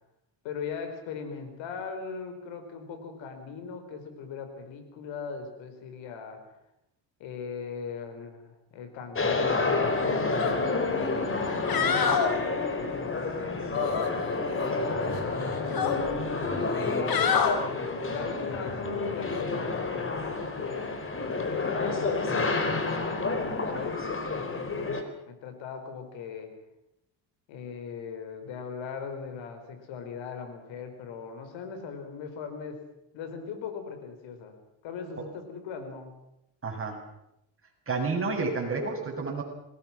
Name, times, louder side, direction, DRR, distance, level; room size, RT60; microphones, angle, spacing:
voice 1, 0.4-6.4 7.2-10.8 11.6-12.1 12.8-14.0 15.5-17.8 18.1-20.9 21.5-26.5 27.5-32.8 33.1-34.6 34.8-36.1, left 6 dB, 80° left, 7 dB, 5.0 m, -39 dB
sound 1, 9.2-25.0, left 3 dB, 30° left, 4.0 m, -29 dB
sound 2, 10.3-10.5 10.9-11.0 11.5-12.3 13.7-14.7 15.1-16.0 16.7-17.6 19.3-19.4, left 7 dB, 50° left, 4.1 m, -28 dB
voice 2, 36.6-37.0 37.9-39.4, right 3 dB, 30° right, 1 dB, 7.6 m, -30 dB
27.5 x 20.5 x 6.1 m, 0.85 s
cardioid pair, 110°, 45 cm